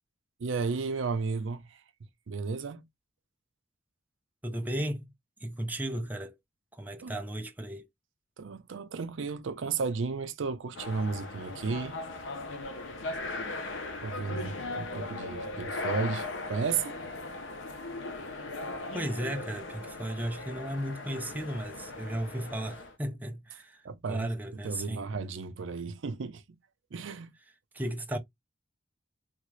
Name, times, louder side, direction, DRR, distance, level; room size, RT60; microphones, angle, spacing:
voice 1, 0.4-1.8 2.3-2.8 7.0-7.1 8.4-12.0 14.0-17.0 23.8-24.3 24.6-26.4 26.9-27.3, right 4 dB, 80° right, 0.5 m, -33 dB
voice 2, 4.4-5.1 5.4-6.4 6.7-7.9 18.9-23.8 24.1-25.0 27.7-28.2, right 1 dB, 10° right, 0.4 m, -35 dB
sound 1, 10.7-22.9, left 2 dB, 80° left, 0.7 m, -38 dB
3.5 x 2.4 x 3.0 m
head